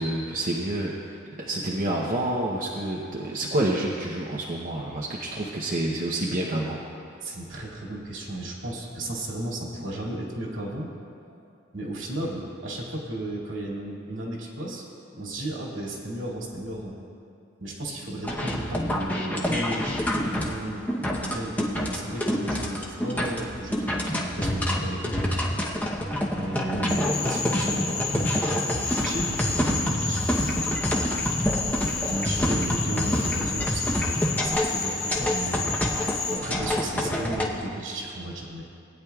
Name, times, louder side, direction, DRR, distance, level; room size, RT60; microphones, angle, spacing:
voice 1, 0.0-6.8, right 1 dB, 45° right, -3 dB, 0.8 m, -28 dB
voice 2, 7.2-10.9 11.3-11.4 11.7-14.9 15.1-17.0 17.6-20.8 21.2-25.2 26.3-31.3 32.1-35.7 36.3-38.6, right 1 dB, 75° right, -3 dB, 2.4 m, -34 dB
sound 1, 18.2-37.5, equal, 10° left, 0.8 m, -27 dB
Cricket / Frog, 26.9-36.4, left 4 dB, 45° left, 1.7 m, -31 dB
19.0 x 9.9 x 2.4 m, 2.6 s
head